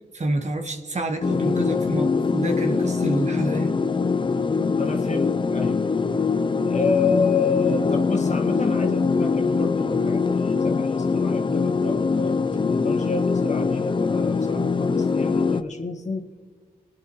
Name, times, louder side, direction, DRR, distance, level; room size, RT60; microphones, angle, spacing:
voice 1, 0.1-3.7, right 2 dB, 45° right, 5 dB, 1.3 m, -28 dB
sound 1, 1.2-15.6, left 4 dB, 30° left, 0.5 m, -23 dB
voice 2, 4.8-5.9 6.7-16.2, left 4 dB, 45° left, 3 dB, 1.7 m, -29 dB
29.5 x 9.9 x 3.1 m, 1.5 s
cardioid pair, 50°, 17 cm